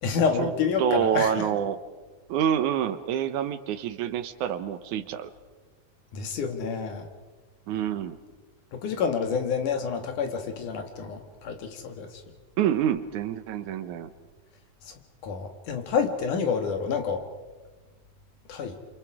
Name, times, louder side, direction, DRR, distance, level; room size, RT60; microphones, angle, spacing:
voice 1, 0.0-1.5 6.1-7.1 8.7-12.2 14.9-15.0 15.2-17.2 18.5-18.8, left 6 dB, 80° left, 5 dB, 3.4 m, -28 dB
voice 2, 0.8-1.8 2.3-5.3 7.7-8.2 12.6-14.1, right 9 dB, 75° right, 11 dB, 2.4 m, -27 dB
28.5 x 26.5 x 4.9 m, 1.3 s
omnidirectional pair, 3.5 m